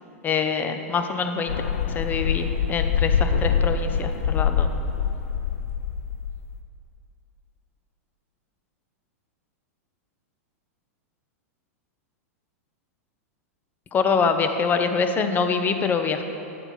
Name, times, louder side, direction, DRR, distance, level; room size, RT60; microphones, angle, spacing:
voice 1, 0.2-1.5 1.9-4.7 13.9-16.2, left 5 dB, 20° left, 7 dB, 0.5 m, -24 dB
sound 1, 1.5-6.6, left 7 dB, 70° left, 0.4 m, -24 dB
8.0 x 4.5 x 5.9 m, 2.8 s
hypercardioid pair, 115°, 8 cm